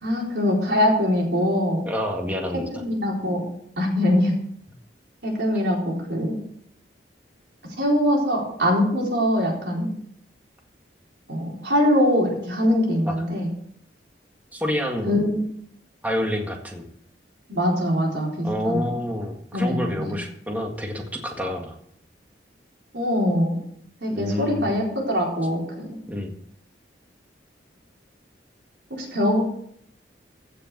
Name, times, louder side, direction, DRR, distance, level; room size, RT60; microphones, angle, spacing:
voice 1, 0.0-1.8 2.7-3.4 3.8-4.4 5.2-6.4 7.8-9.9 11.3-13.5 15.0-15.4 17.5-18.9 19.5-20.2 22.9-23.6 24.0-26.0 28.9-29.4, left 1 dB, 75° right, -2 dB, 4.2 m, -23 dB
voice 2, 1.9-2.7 13.1-13.2 14.5-15.2 16.0-16.9 18.4-21.7 24.1-24.7 26.1-26.3, left 1 dB, 10° right, 2 dB, 1.8 m, -28 dB
15.5 x 6.7 x 6.7 m, 0.69 s
head